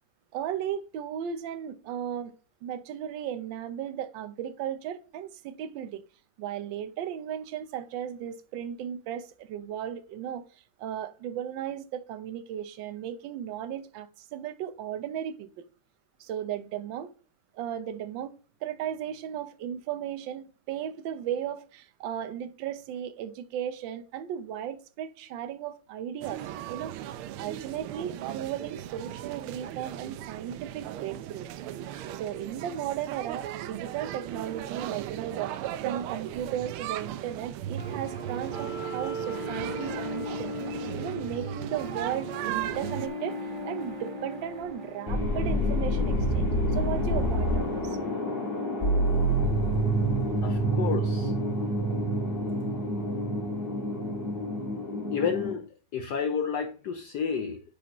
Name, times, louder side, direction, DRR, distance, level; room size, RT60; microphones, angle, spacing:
voice 1, 0.3-2.3 2.6-6.0 6.4-15.5 16.2-17.1 17.5-18.4 18.6-31.5 32.1-35.6 35.8-46.5 46.7-48.0, right 10 dB, 70° right, 1.4 m, -36 dB
sound 1, 26.2-43.1, right 11 dB, 85° right, 1.5 m, -37 dB
sound 2, 37.8-45.8, equal, 35° right, 0.8 m, -37 dB
sound 3, 45.1-55.5, right 1 dB, 25° left, 1.9 m, -27 dB
voice 2, 50.4-51.3 55.1-57.6, left 6 dB, 70° left, 1.0 m, -31 dB
10.0 x 5.1 x 2.9 m
omnidirectional pair, 2.3 m